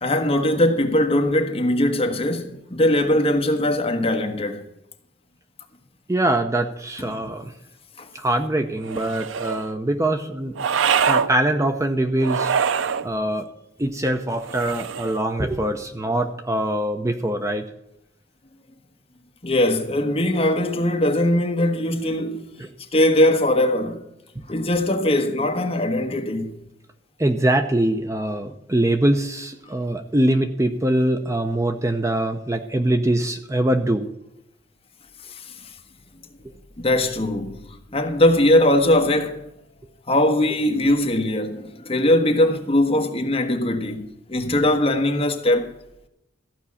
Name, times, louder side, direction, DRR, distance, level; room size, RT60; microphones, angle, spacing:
voice 1, 0.0-4.6 8.0-8.1 19.4-22.5 22.9-24.0 24.5-26.6 35.3-35.5 36.8-37.6 37.9-39.4 40.1-45.7, left 1 dB, 30° left, 1.3 m, -20 dB
voice 2, 6.1-7.5 8.1-10.6 11.0-12.5 13.0-13.5 13.8-17.6 24.4-24.5 27.2-34.1, right 1 dB, 15° right, 0.7 m, -23 dB
sound 1, 8.8-9.7 10.6-11.3 12.2-13.1 14.4-15.2, right 7 dB, 80° right, 0.4 m, -24 dB
14.5 x 5.4 x 8.5 m
head